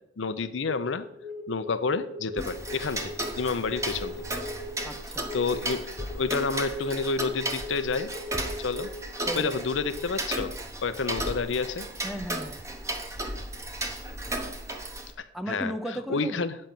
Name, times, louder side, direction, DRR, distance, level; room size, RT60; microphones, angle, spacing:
voice 1, 0.2-1.1 1.5-4.2 5.3-8.1 8.6-8.9 9.3-10.5 10.8-11.9 13.0-13.1 15.2-15.7 16.1-16.6, left 4 dB, 85° left, 11 dB, 0.6 m, -29 dB
sound 1, 0.8-10.0, left 1 dB, 45° right, 2.0 m, -40 dB
Tick-tock, 2.4-15.1, right 1 dB, 15° right, 1.0 m, -35 dB
voice 2, 4.8-5.3 9.3-9.6 12.0-12.6 15.3-16.5, equal, ahead, 8 dB, 0.6 m, -35 dB
8.4 x 5.3 x 7.6 m, 0.76 s
head